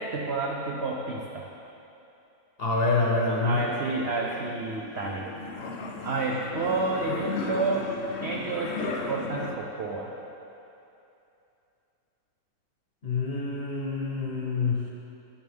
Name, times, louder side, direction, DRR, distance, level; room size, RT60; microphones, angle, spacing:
voice 1, 0.0-1.5 3.4-5.3 6.0-7.9 8.2-10.1, right 3 dB, 70° right, -1 dB, 0.6 m, -30 dB
voice 2, 2.6-3.6 13.0-14.9, left 3 dB, 40° left, -3 dB, 0.9 m, -26 dB
sound 1, 3.6-9.6, left 4 dB, 75° left, 0.6 m, -36 dB
10.5 x 7.7 x 3.5 m, 2.8 s
omnidirectional pair, 1.9 m